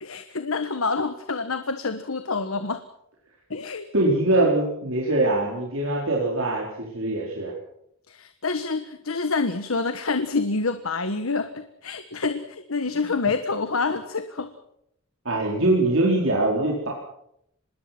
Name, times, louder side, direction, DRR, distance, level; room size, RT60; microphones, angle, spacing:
voice 1, 0.0-2.8 3.5-3.9 8.1-14.5, left 4 dB, 85° left, 10 dB, 1.4 m, -27 dB
voice 2, 3.9-7.5 15.2-16.9, right 2 dB, 70° right, -3 dB, 4.7 m, -23 dB
25.5 x 21.0 x 6.1 m, 0.77 s
head